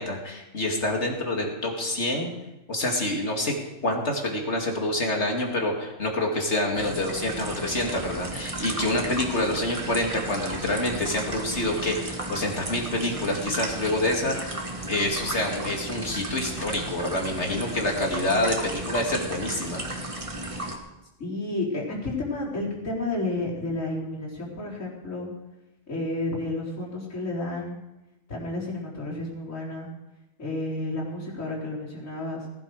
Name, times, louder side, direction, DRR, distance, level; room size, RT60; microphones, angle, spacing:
voice 1, 0.0-2.3 2.7-3.5 3.8-14.6 14.9-19.8, left 1 dB, 60° left, 1 dB, 2.7 m, -27 dB
tulips tank loop, 6.8-20.8, right 2 dB, 25° right, 1.6 m, -34 dB
voice 2, 21.2-25.3 25.9-27.8 28.3-29.9 30.4-32.4, left 2 dB, 85° left, -5 dB, 4.5 m, -31 dB
18.5 x 12.0 x 4.9 m, 0.96 s
omnidirectional pair, 1.3 m